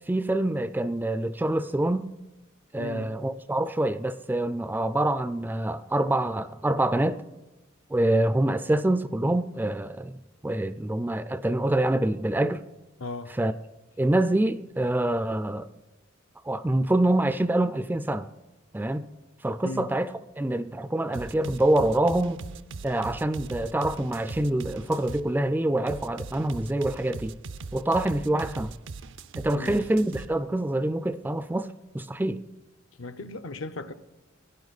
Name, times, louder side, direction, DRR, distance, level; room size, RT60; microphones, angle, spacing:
voice 1, 0.1-2.1 2.7-7.2 7.9-12.6 13.4-13.5 14.0-15.7 16.5-18.3 18.7-19.1 19.4-20.1 20.4-22.4 22.8-27.4 27.7-28.7 29.3-32.4, right 1 dB, 10° right, 0.3 m, -26 dB
voice 2, 2.8-3.1 13.0-13.3 19.6-19.9 29.5-29.8 33.0-33.9, left 3 dB, 75° left, 0.7 m, -36 dB
sound 1, 21.1-25.3 25.9-30.3, right 4 dB, 65° right, 0.5 m, -40 dB
17.0 x 10.0 x 4.1 m
head